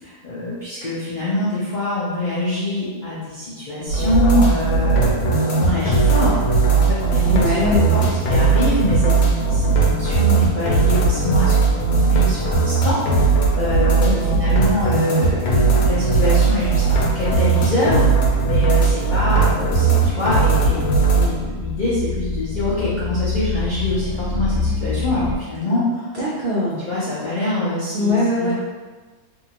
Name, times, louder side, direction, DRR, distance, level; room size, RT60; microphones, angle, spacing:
voice 1, 0.0-6.4 6.7-7.5 7.9-26.1 26.9-28.5, left 1 dB, 65° left, -11 dB, 0.4 m, -24 dB
sound 1, 3.9-21.3, right 4 dB, 80° left, 1.2 m, -18 dB
voice 2, 7.3-8.2 14.0-14.4 25.7-25.8 26.1-26.9 27.9-28.5, left 1 dB, 70° right, -8 dB, 0.5 m, -22 dB
sound 2, 20.4-25.4, left 4 dB, ahead, 1.2 m, -26 dB
2.7 x 2.6 x 2.8 m, 1.3 s
omnidirectional pair, 1.7 m